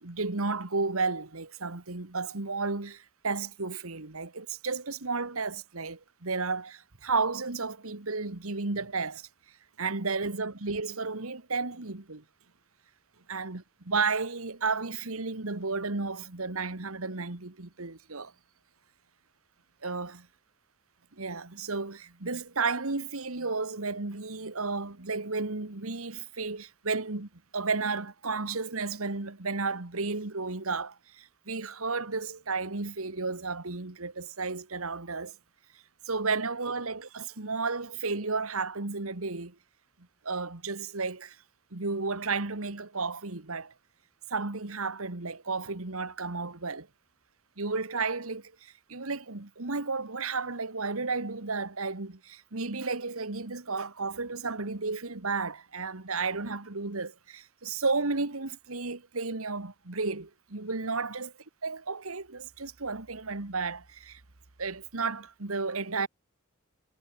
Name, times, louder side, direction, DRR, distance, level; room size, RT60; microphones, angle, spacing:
voice 1, 0.0-9.3 9.8-12.2 13.3-18.3 19.8-20.2 21.2-35.4 36.1-39.6 40.2-41.4 41.7-43.7 44.3-46.9 47.6-61.3 61.6-64.2 64.6-66.1, right 4 dB, 75° right, 1.8 m, -33 dB
head